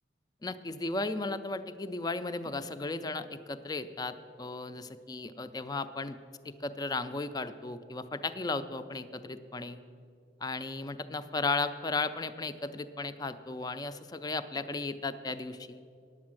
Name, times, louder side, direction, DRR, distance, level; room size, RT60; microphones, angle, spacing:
voice 1, 0.4-6.2 6.4-9.8 10.4-15.8, left 3 dB, 20° left, 11 dB, 0.4 m, -35 dB
9.5 x 8.1 x 7.5 m, 2.4 s
head